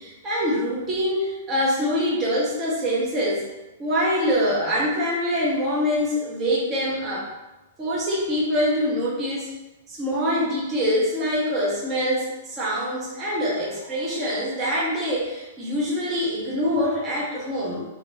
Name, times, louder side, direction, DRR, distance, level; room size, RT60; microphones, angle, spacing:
voice 1, 0.0-3.5 3.8-7.3 7.8-9.5 9.9-17.8, equal, 15° right, -6 dB, 0.6 m, -24 dB
3.2 x 2.5 x 3.0 m, 1.0 s
hypercardioid pair, 170°, 0 cm